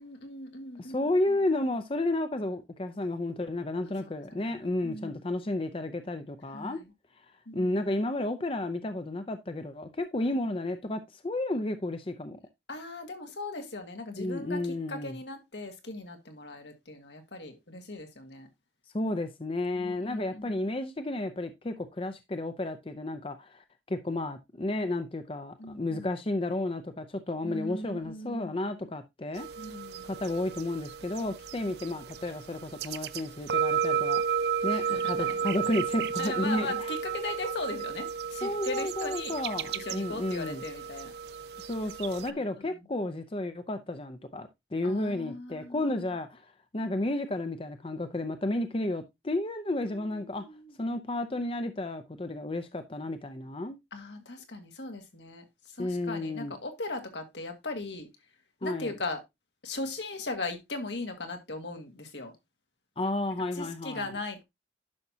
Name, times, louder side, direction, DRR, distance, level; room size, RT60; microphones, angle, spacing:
voice 1, 0.0-1.1 4.0-4.5 4.8-5.2 6.5-6.9 7.5-7.7 10.2-10.3 12.7-18.5 19.7-20.6 25.6-26.1 27.4-28.7 29.6-30.1 34.7-35.4 36.2-39.3 39.7-41.1 42.3-42.8 44.8-46.1 49.9-50.7 53.9-58.1 58.6-59.2 59.6-62.3 63.5-64.4, left 2 dB, 80° left, 1.8 m, -39 dB
voice 2, 0.8-6.8 7.5-12.4 14.2-15.1 18.9-29.5 30.0-34.4 34.6-36.7 38.4-40.6 41.6-50.4 50.8-53.8 55.8-56.6 58.6-58.9 63.0-64.1, left 2 dB, 30° left, 0.6 m, -32 dB
sound 1, 29.4-42.3, right 7 dB, 60° right, 0.5 m, -33 dB
10.5 x 5.9 x 2.8 m
head